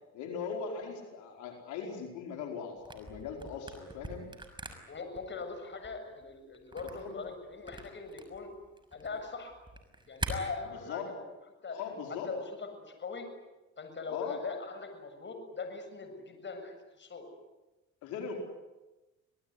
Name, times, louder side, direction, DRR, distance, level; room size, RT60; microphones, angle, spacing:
voice 1, 0.1-4.3 7.0-7.1 10.7-11.1 11.7-12.3 14.1-14.4 18.0-18.3, left 6 dB, 75° left, 2 dB, 4.9 m, -39 dB
Camera, 2.8-10.3, right 2 dB, 15° right, 6.1 m, -44 dB
voice 2, 4.9-8.5 8.9-9.5 10.1-11.2 11.6-11.8 12.3-13.3 13.8-17.3, left 4 dB, 40° left, 6 dB, 7.4 m, -41 dB
27.0 x 19.0 x 9.7 m, 1.1 s
cardioid pair, 90°, 30 cm